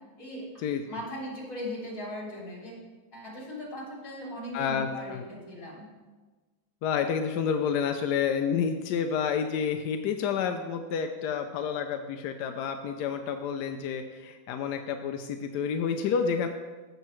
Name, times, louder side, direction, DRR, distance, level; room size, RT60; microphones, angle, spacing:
voice 1, 0.2-2.7 3.1-5.9, left 1 dB, 40° left, -4 dB, 3.3 m, -39 dB
voice 2, 4.5-5.2 6.8-16.5, left 7 dB, 75° left, 6 dB, 0.9 m, -29 dB
14.5 x 6.7 x 3.1 m, 1.3 s
omnidirectional pair, 2.2 m